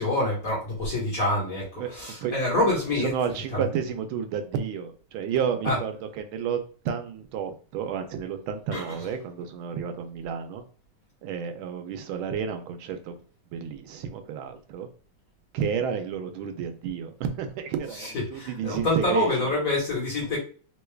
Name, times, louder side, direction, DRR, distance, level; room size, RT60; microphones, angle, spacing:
voice 1, 0.0-3.1 3.5-3.6 5.6-5.8 8.7-9.0 18.0-20.4, left 2 dB, 50° left, -5 dB, 1.5 m, -26 dB
voice 2, 3.0-10.6 11.2-13.2 13.5-14.9 15.5-19.5, right 7 dB, 90° right, 7 dB, 1.4 m, -31 dB
3.7 x 2.3 x 3.2 m, 0.42 s
omnidirectional pair, 2.2 m